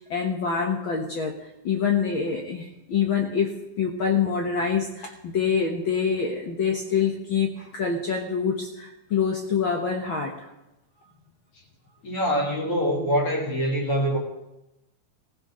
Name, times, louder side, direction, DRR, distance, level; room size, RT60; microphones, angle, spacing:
voice 1, 0.1-1.4 1.6-10.4, left 6 dB, 60° left, 2 dB, 1.3 m, -26 dB
voice 2, 12.0-14.2, equal, 45° left, -3 dB, 3.5 m, -24 dB
17.5 x 15.5 x 3.8 m, 0.94 s
omnidirectional pair, 3.6 m